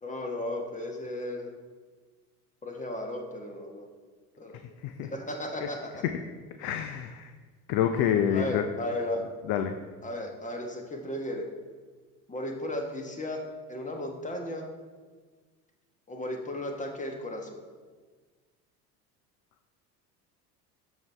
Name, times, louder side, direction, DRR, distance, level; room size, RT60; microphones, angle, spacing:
voice 1, 0.0-1.5 2.6-3.9 4.4-4.6 5.0-6.0 8.3-9.2 10.0-11.5 12.3-13.4 13.7-14.7 16.1-17.6, left 1 dB, 15° left, 3 dB, 1.2 m, -35 dB
voice 2, 6.6-7.3 7.7-8.6 9.5-9.7, left 9 dB, 50° left, 7 dB, 0.6 m, -27 dB
12.5 x 4.7 x 3.3 m, 1.4 s
figure-of-eight pair, 70°, 47 cm